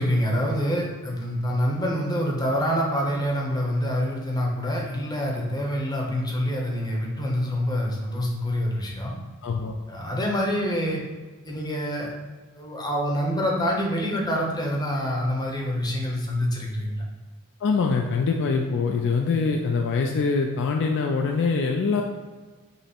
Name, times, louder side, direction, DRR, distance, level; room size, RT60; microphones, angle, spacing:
voice 1, 0.0-9.1 9.9-11.0 11.4-12.1 12.5-17.1, equal, 20° left, -1 dB, 0.7 m, -26 dB
voice 2, 9.4-9.7 17.6-22.0, left 4 dB, 55° left, 2 dB, 0.3 m, -24 dB
5.3 x 2.0 x 4.3 m, 1.4 s
head